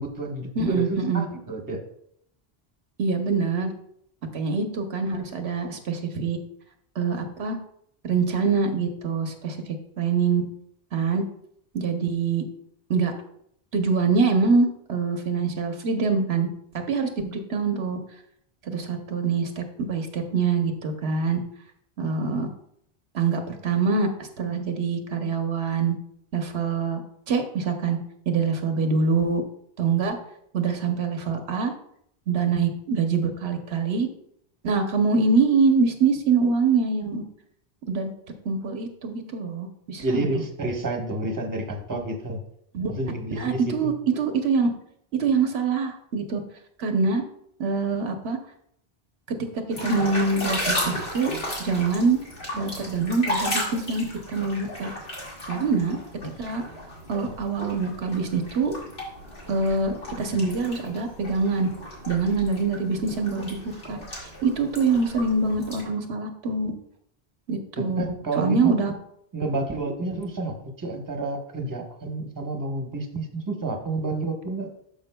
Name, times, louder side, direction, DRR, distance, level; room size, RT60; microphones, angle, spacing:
voice 1, 0.0-1.8 40.0-42.4 42.9-43.9 67.8-68.8 69.3-74.7, right 2 dB, 20° right, 3 dB, 0.9 m, -29 dB
voice 2, 0.6-1.3 3.0-3.7 4.3-6.4 7.0-7.6 8.0-9.6 10.0-10.4 10.9-11.2 11.7-12.4 12.9-13.1 13.7-16.5 16.9-18.0 18.7-21.4 22.0-22.5 23.1-26.0 26.3-27.0 27.3-28.0 28.3-29.4 29.8-30.2 30.5-31.7 32.3-34.1 34.6-37.2 37.9-38.1 38.4-40.3 42.7-42.9 43.4-44.7 45.1-46.4 46.8-47.2 47.6-48.4 49.3-49.4 49.8-51.3 51.6-52.2 52.5-54.9 55.5-56.0 56.4-56.6 57.1-58.7 59.5-61.7 62.1-66.7 67.5-68.0 68.4-68.9, right 4 dB, 90° right, 5 dB, 1.1 m, -24 dB
sound 1, 49.7-65.8, left 1 dB, 75° left, 2.3 m, -34 dB
12.0 x 5.0 x 2.2 m, 0.70 s
omnidirectional pair, 1.0 m